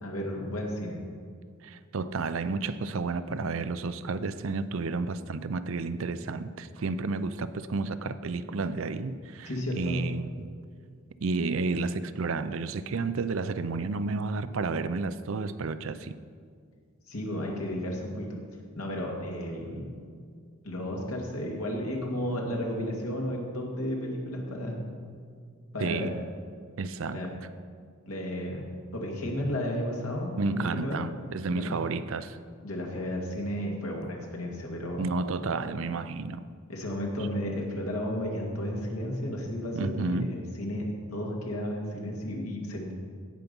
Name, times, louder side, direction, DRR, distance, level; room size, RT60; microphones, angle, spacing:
voice 1, 0.0-1.0 9.5-10.0 17.1-18.3 18.7-20.0 20.6-24.9 25.7-26.1 27.1-27.3 28.1-31.0 31.5-31.7 32.6-35.0 36.7-42.9, left 1 dB, 85° left, -1 dB, 2.2 m, -33 dB
voice 2, 1.6-9.5 9.8-10.5 11.2-16.1 25.8-26.2 26.8-27.2 30.4-32.4 35.0-36.5 39.7-40.3, right 3 dB, 65° right, 13 dB, 0.5 m, -31 dB
16.5 x 5.9 x 5.3 m, 2.1 s
head